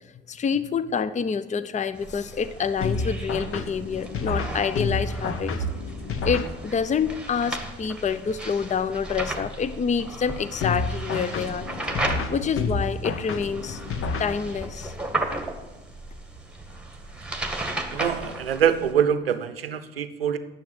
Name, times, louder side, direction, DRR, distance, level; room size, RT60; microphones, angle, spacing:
voice 1, 0.3-5.5 6.2-11.7 12.3-13.8 14.2-14.9, left 6 dB, 25° left, 15 dB, 0.7 m, -27 dB
sound 1, 2.0-18.9, right 2 dB, 5° right, 1.9 m, -35 dB
sound 2, 2.8-7.0 10.6-14.8, left 4 dB, 50° left, 1.2 m, -30 dB
voice 2, 17.9-20.4, right 9 dB, 85° right, 12 dB, 0.6 m, -24 dB
10.5 x 7.2 x 7.9 m, 1.1 s
figure-of-eight pair, 50°, 29 cm